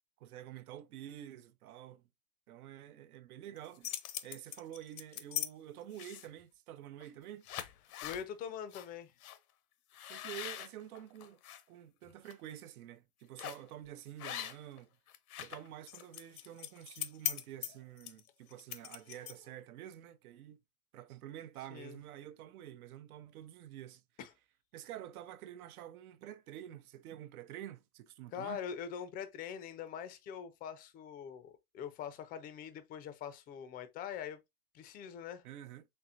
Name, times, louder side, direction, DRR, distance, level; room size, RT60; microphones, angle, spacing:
voice 1, 0.2-2.1 2.5-3.9 4.2-7.5 10.1-11.4 11.7-14.9 15.4-20.6 20.9-24.0 24.7-28.6 35.4-35.9, right 12 dB, 70° right, 0.8 m, -49 dB
sound 1, 3.6-5.5 5.9-6.4 7.0-7.1 7.4-8.2 8.7-8.9 9.2-9.4 9.9-11.6 12.1-12.3 13.4-13.7 14.2-14.8 15.1-19.6, left 12 dB, 70° left, 0.8 m, -41 dB
voice 2, 8.0-9.1 21.7-22.0 24.2-24.3 28.3-34.4 34.7-35.4, left 8 dB, 20° left, 0.5 m, -43 dB
4.3 x 3.3 x 2.4 m
hypercardioid pair, 120°, 45 cm